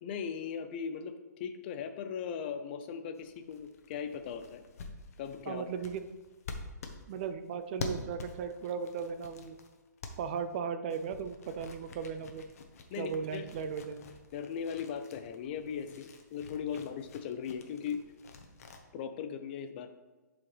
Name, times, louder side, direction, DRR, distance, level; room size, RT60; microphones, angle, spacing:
voice 1, 0.0-4.6 5.2-5.6 12.9-13.5 14.3-18.0 18.9-19.9, left 7 dB, 35° left, 9 dB, 0.6 m, -38 dB
sound 1, 3.1-10.6 10.9-18.8, left 4 dB, 55° left, 1.1 m, -47 dB
voice 2, 5.5-6.0 7.1-9.6 10.2-12.5 13.0-14.1, right 6 dB, 35° right, 10 dB, 0.4 m, -37 dB
11.0 x 4.9 x 3.3 m, 1.2 s
hypercardioid pair, 150°, 10 cm